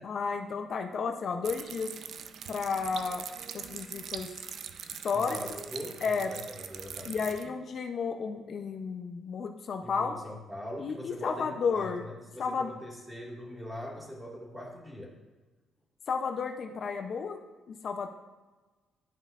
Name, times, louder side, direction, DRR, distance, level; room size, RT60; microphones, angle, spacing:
voice 1, 0.0-1.9 2.5-3.2 3.5-4.3 5.0-5.4 6.0-6.3 7.0-10.1 10.8-12.1 12.4-12.7 16.1-17.4 17.7-18.1, left 5 dB, 55° left, 4 dB, 0.6 m, -32 dB
sound 1, 1.4-7.4, right 7 dB, 65° right, 0.5 m, -42 dB
voice 2, 5.1-7.5 9.8-15.1, equal, 15° right, -2 dB, 1.9 m, -42 dB
12.0 x 5.5 x 2.5 m, 1.2 s
cardioid pair, 90°, 0 cm